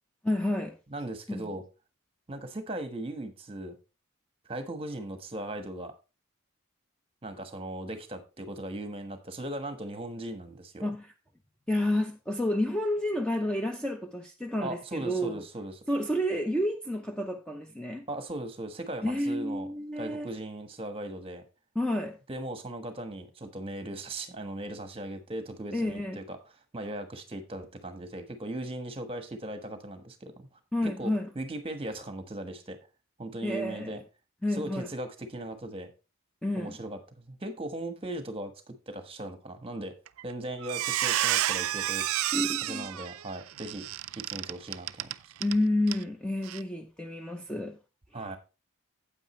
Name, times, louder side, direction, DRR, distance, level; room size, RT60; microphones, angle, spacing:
voice 1, 0.2-0.8 1.3-1.4 10.8-11.1 11.7-15.4 15.9-18.1 19.0-20.3 21.8-22.2 25.7-26.2 30.7-31.3 33.4-34.0 34.4-34.9 36.4-36.8 42.3-42.9 45.4-47.8, left 1 dB, 5° left, 0.6 m, -30 dB
voice 2, 0.9-1.6 2.3-3.8 4.5-5.9 7.2-10.9 14.6-15.8 18.1-19.7 20.0-21.4 22.3-26.4 26.7-30.5 30.8-32.8 33.2-34.0 34.5-35.9 36.6-39.9 40.2-42.0 42.6-43.8 44.3-45.1 48.1-48.4, right 1 dB, 25° right, 1.3 m, -38 dB
Squeak, 40.1-40.3 40.6-45.6 45.9-46.0 46.4-46.6, right 13 dB, 75° right, 0.4 m, -30 dB
9.0 x 8.3 x 3.1 m
head